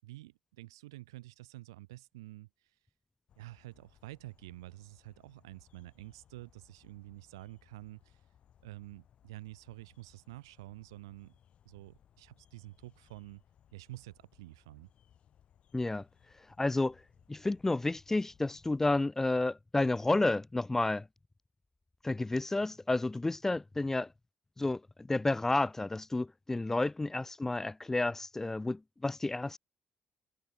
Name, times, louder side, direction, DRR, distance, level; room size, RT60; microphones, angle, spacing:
voice 1, 0.0-2.5 3.4-8.2 8.6-11.4 11.6-13.4 13.7-14.9, right 18 dB, 85° right, 6.4 m, -49 dB
sound 1, 3.3-19.0, left 9 dB, 55° left, 7.0 m, -65 dB
voice 2, 15.7-16.0 16.6-17.0 17.3-21.1 22.0-24.1 24.6-29.6, left 2 dB, 15° left, 0.5 m, -31 dB
hypercardioid pair, 50°, 2 cm